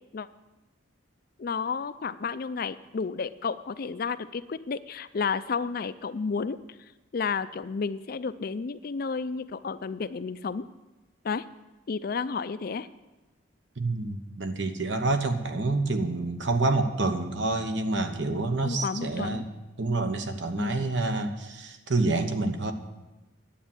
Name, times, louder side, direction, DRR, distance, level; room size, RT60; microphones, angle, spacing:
voice 1, 1.4-6.6 7.1-10.7 11.2-11.4 11.9-12.9 18.6-19.4 20.6-20.9, left 5 dB, 50° left, 14 dB, 0.4 m, -31 dB
voice 2, 13.8-19.4 19.8-22.7, right 2 dB, 65° right, 7 dB, 1.1 m, -28 dB
10.5 x 8.6 x 7.2 m, 1.1 s
head